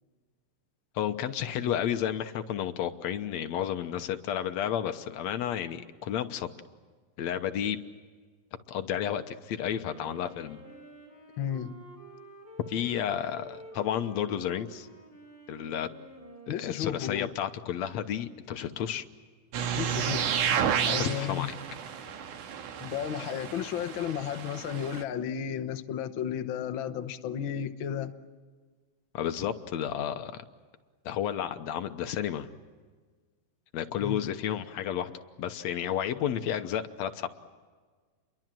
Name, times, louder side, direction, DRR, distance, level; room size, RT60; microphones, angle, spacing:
voice 1, 1.0-6.5 7.2-7.8 8.7-10.6 12.7-14.9 15.5-15.9 16.5-19.0 21.0-21.5 29.1-30.4 31.1-32.5 33.7-35.1 35.4-37.3, left 10 dB, 65° left, 2.0 m, -31 dB
Wind instrument woodwind instrument, 9.7-17.4, right 2 dB, 10° right, 7.1 m, -50 dB
voice 2, 11.4-11.7 16.5-17.3 19.8-21.5 22.8-28.1 34.0-34.2, left 9 dB, 80° left, 1.1 m, -33 dB
sound 1, 19.5-25.0, right 8 dB, 75° right, 2.9 m, -31 dB
29.5 x 23.0 x 7.6 m
omnidirectional pair, 3.8 m